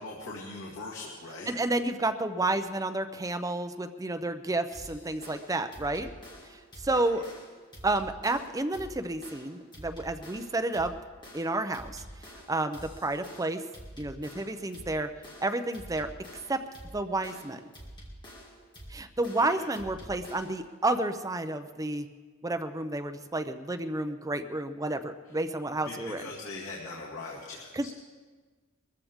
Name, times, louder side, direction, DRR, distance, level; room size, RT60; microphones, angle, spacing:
voice 1, 0.0-1.5 6.9-7.0 19.4-19.7 25.8-27.9, left 3 dB, 85° left, -4 dB, 2.1 m, -41 dB
voice 2, 1.5-6.1 6.8-7.2 7.8-10.9 11.3-12.0 12.5-13.6 14.0-15.1 15.4-16.1 16.5-16.6 16.9-17.6 18.9-22.1 22.4-26.2 27.7-27.9, right 2 dB, 15° right, 8 dB, 0.6 m, -30 dB
sound 1, 4.7-20.7, equal, 20° left, 2.2 m, -48 dB
22.0 x 14.0 x 3.6 m, 1.4 s
head